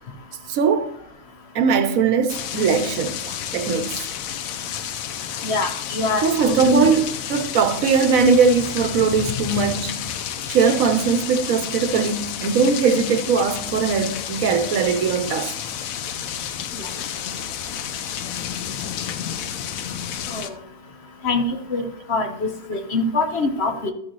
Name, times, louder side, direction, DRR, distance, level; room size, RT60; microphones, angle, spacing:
voice 1, 0.5-0.9 1.5-3.9 6.2-10.0 10.4-15.5, right 5 dB, 80° right, 1.2 m, -20 dB
sound 1, 2.3-20.5, left 9 dB, 75° left, 1.1 m, -30 dB
voice 2, 5.4-6.9 16.8-16.9 20.3-20.5 21.2-23.9, left 2 dB, 55° left, 1.1 m, -24 dB
13.5 x 6.3 x 3.1 m
omnidirectional pair, 1.5 m